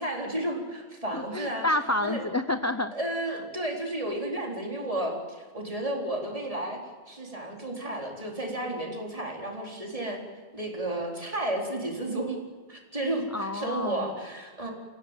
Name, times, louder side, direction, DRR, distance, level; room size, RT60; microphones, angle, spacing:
voice 1, 0.0-1.7 2.0-2.2 2.9-6.8 7.1-10.2 10.5-12.4 12.7-14.7, right 1 dB, 30° right, -1 dB, 4.3 m, -32 dB
voice 2, 1.1-2.9 3.3-3.4 13.3-14.2, left 2 dB, 15° left, 9 dB, 0.7 m, -29 dB
29.5 x 16.0 x 9.1 m, 1.4 s
omnidirectional pair, 1.2 m